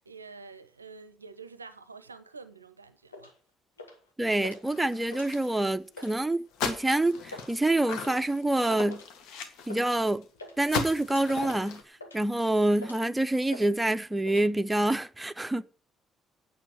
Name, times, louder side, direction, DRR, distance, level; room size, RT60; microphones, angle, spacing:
voice 1, 0.0-3.3, right 4 dB, 90° right, 0.5 m, -47 dB
sound 1, 3.1-3.3 3.8-4.1 4.4-4.6 5.0-5.6 5.9-6.1 6.6-6.9 7.2-7.5 8.0-8.3 8.9-9.1 9.7-9.9 10.1-10.6 11.1-11.3 11.7-12.3 12.8-13.1 13.5-13.7 14.0-14.5, left 2 dB, 90° left, 1.4 m, -45 dB
voice 2, 4.2-9.0 9.7-10.2 10.6-11.8 12.1-15.6, right 1 dB, 10° right, 0.7 m, -26 dB
sound 2, 4.7-5.7 6.0-6.1 6.5-10.2 10.7-11.8, left 6 dB, 65° left, 1.6 m, -37 dB
9.1 x 6.4 x 8.3 m
figure-of-eight pair, 45°, 0 cm